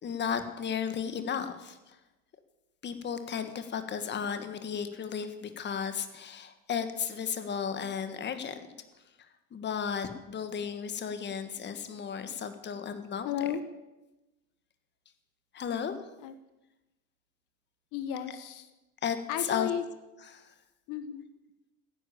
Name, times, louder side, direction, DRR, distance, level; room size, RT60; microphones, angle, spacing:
voice 1, 0.0-2.0 2.8-8.7 9.2-13.3 15.5-16.0 19.0-19.7 20.2-20.5, left 7 dB, 35° left, 9 dB, 1.5 m, -34 dB
voice 2, 13.2-13.6 16.2-16.3 17.9-18.7 19.3-19.8 20.9-21.2, left 10 dB, 70° left, 11 dB, 1.1 m, -33 dB
15.5 x 10.0 x 8.4 m, 1.0 s
cardioid pair, 140°, 32 cm